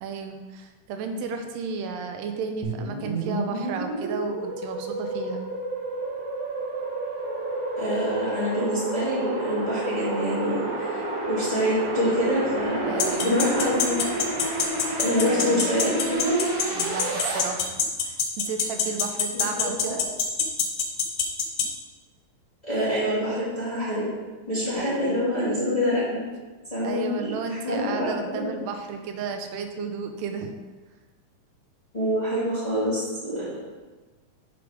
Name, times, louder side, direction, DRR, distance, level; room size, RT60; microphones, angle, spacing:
voice 1, 0.0-5.4 12.8-13.4 15.3-15.7 16.7-20.0 24.7-25.1 26.8-30.5, right 5 dB, 90° right, 5 dB, 2.3 m, -33 dB
sound 1, 2.6-17.4, right 2 dB, 55° right, 1.8 m, -30 dB
voice 2, 7.8-14.0 15.0-16.4 19.3-20.1 22.6-24.0 24.5-26.2 26.7-28.5 31.9-33.6, equal, 15° left, -10 dB, 1.6 m, -26 dB
sound 2, 13.0-21.6, left 7 dB, 90° left, 2.5 m, -24 dB
6.4 x 5.1 x 4.8 m, 1.3 s
omnidirectional pair, 3.8 m